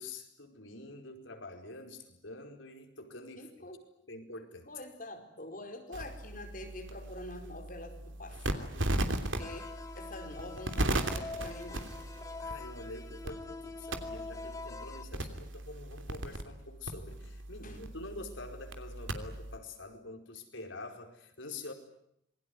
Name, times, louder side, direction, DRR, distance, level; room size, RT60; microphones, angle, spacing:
voice 1, 0.0-3.7 4.1-4.7 12.4-21.7, left 2 dB, 75° left, 4 dB, 4.9 m, -46 dB
voice 2, 3.4-3.8 4.7-11.9 17.6-17.8, left 1 dB, 45° left, 5 dB, 4.8 m, -46 dB
sound 1, 5.9-19.6, right 1 dB, 75° right, 3.0 m, -38 dB
sound 2, 9.4-15.0, left 3 dB, 15° left, 2.1 m, -44 dB
27.0 x 21.5 x 9.6 m, 0.75 s
head